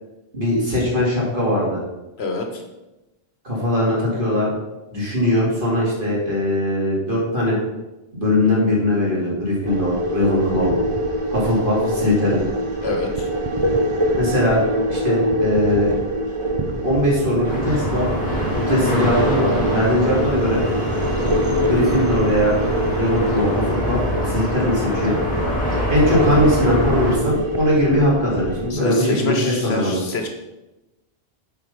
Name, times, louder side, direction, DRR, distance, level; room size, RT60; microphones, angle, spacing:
voice 1, 0.3-1.8 3.4-4.5 4.9-7.6 8.1-10.7 11.3-12.4 14.1-14.6 14.9-15.9 16.8-18.0 18.5-20.6 21.6-22.6 23.0-24.0 24.3-25.2 25.9-30.0, left 1 dB, 50° right, -5 dB, 2.7 m, -20 dB
voice 2, 2.2-2.6 12.8-13.3 26.2-26.5 28.7-30.3, left 2 dB, 75° left, 3 dB, 1.3 m, -27 dB
sound 1, 9.7-28.7, equal, 35° right, 0.7 m, -24 dB
sound 2, 17.5-27.2, equal, 5° left, 2.2 m, -24 dB
7.9 x 4.6 x 5.3 m, 1.0 s
omnidirectional pair, 1.1 m